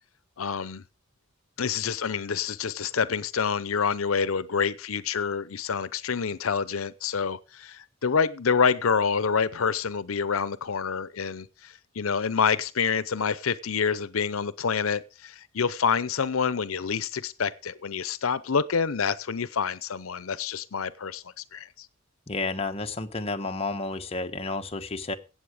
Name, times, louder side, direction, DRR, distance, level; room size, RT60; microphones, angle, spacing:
voice 1, 0.4-0.8 1.6-21.9, left 6 dB, 90° left, 0.7 m, -27 dB
voice 2, 22.3-25.1, left 3 dB, 30° left, 1.2 m, -31 dB
16.5 x 7.8 x 4.9 m
head